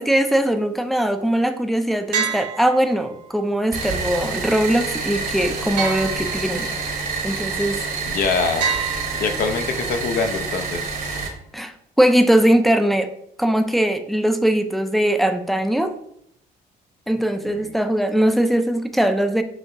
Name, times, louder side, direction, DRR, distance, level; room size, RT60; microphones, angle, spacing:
voice 1, 0.0-6.7 7.2-7.8 11.5-11.7 12.0-13.1 13.4-15.9 17.1-19.4, right 1 dB, ahead, 7 dB, 0.4 m, -20 dB
sound 1, 2.1-3.4 5.8-6.8 8.6-9.8, right 6 dB, 80° right, 1.4 m, -28 dB
sound 2, 3.7-11.3, right 4 dB, 55° right, 1.0 m, -28 dB
voice 2, 8.0-10.8 17.5-17.7, left 5 dB, 60° left, 7 dB, 0.6 m, -25 dB
5.9 x 2.8 x 2.7 m, 0.72 s
cardioid pair, 110°, 17 cm